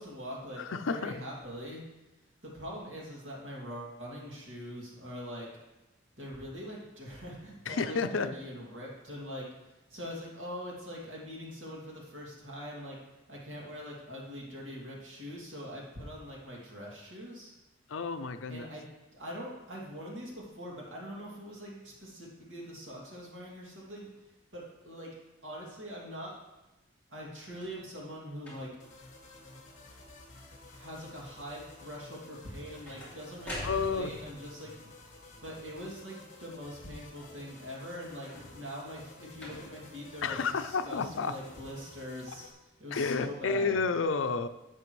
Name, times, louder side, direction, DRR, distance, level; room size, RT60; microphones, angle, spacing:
voice 1, 0.0-0.6 0.9-1.8 2.4-5.5 6.1-13.0 13.3-17.5 18.5-18.8 19.1-24.1 24.5-25.2 25.4-26.4 27.1-28.7 29.8-30.0 30.7-34.7 35.4-42.4 42.8-43.8, equal, 80° right, -4 dB, 2.6 m, -43 dB
voice 2, 0.6-1.1 7.7-8.3 17.9-18.6 33.6-34.2 40.2-41.4 42.9-44.5, left 4 dB, 90° left, 10 dB, 0.5 m, -31 dB
sound 1, 27.4-27.8 28.4-28.9 29.5-29.9 30.2-30.7 32.4-34.3 38.1-38.8 39.4-39.9 40.8-40.9, left 1 dB, 5° left, 2.5 m, -45 dB
sound 2, 28.8-42.5, left 2 dB, 40° left, 1.4 m, -53 dB
11.0 x 7.5 x 3.2 m, 1.0 s
head